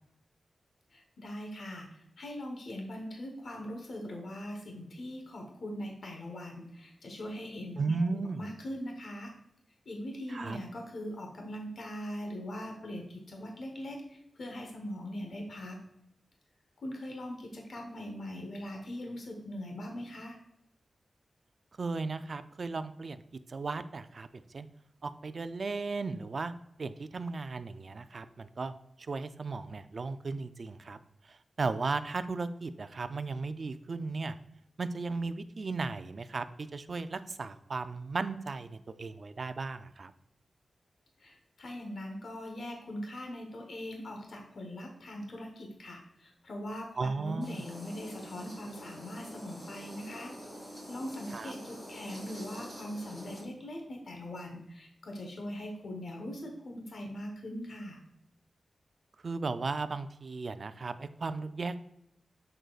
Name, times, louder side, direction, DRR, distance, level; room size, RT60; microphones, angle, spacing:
voice 1, 0.9-9.3 9.9-15.8 16.8-20.4 41.2-50.3 50.9-58.0, left 1 dB, 60° left, 2 dB, 1.0 m, -41 dB
voice 2, 7.8-8.5 10.3-10.6 21.8-23.2 23.5-24.7 25.0-26.5 26.8-28.7 29.1-31.0 31.3-34.4 34.8-40.1 47.0-47.6 51.3-51.5 59.2-61.8, right 3 dB, 45° right, 11 dB, 0.3 m, -35 dB
sound 1, 47.4-53.4, equal, 25° left, 2.5 m, -46 dB
6.6 x 6.3 x 2.4 m, 0.78 s
wide cardioid pair, 175°, 0 cm